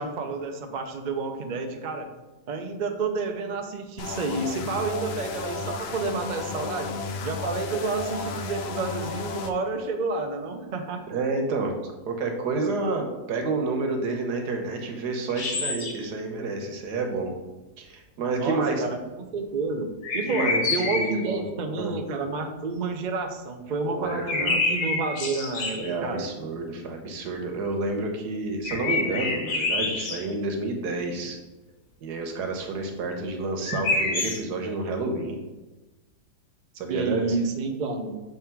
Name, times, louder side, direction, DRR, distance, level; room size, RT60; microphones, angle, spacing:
voice 1, 0.0-2.1 2.5-6.9 7.2-11.0 18.4-26.3 36.9-38.1, right 3 dB, 60° right, 5 dB, 0.4 m, -30 dB
sound 1, 4.0-9.5, left 3 dB, 85° left, 0.5 m, -33 dB
voice 2, 11.1-11.7 12.1-17.3 17.8-18.8 20.3-20.6 20.9-21.5 21.7-21.9 23.8-24.6 25.8-31.4 32.0-35.4 36.7-37.4, right 3 dB, 85° right, 3 dB, 1.5 m, -29 dB
sound 2, 15.3-16.1 20.0-21.3 24.1-25.9 28.6-30.2 33.6-34.4, left 3 dB, 65° left, 1.4 m, -27 dB
6.5 x 3.6 x 4.5 m, 1.1 s
omnidirectional pair, 1.7 m